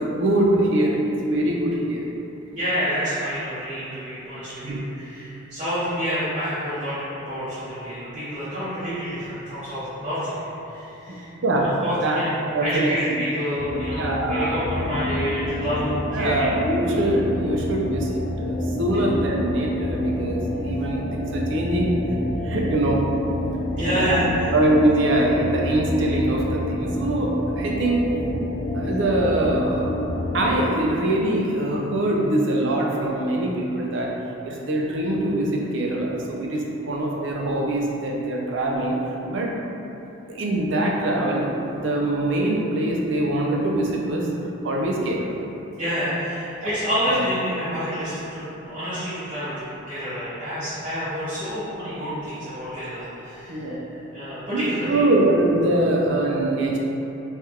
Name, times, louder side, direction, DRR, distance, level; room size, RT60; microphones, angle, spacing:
voice 1, 0.1-2.1 4.6-4.8 11.1-11.2 11.4-11.7 12.0-12.2 12.5-13.2 13.9-14.6 16.1-18.1 18.4-21.9 22.4-23.0 23.8-24.2 24.5-28.0 28.7-29.9 30.3-34.1 34.4-39.0 39.3-39.5 40.3-44.3 44.6-45.3 46.6-46.7 47.1-47.2 53.5-53.8 54.5-56.8, right 1 dB, 60° right, -2 dB, 0.5 m, -23 dB
voice 2, 2.5-11.3 11.6-16.5 23.7-24.5 45.7-49.5 49.9-53.8 54.1-55.0, equal, 35° right, -15 dB, 1.0 m, -28 dB
sound 1, 13.6-30.6, left 1 dB, 60° left, 0.5 m, -28 dB
3.3 x 2.4 x 4.3 m, 3.0 s
head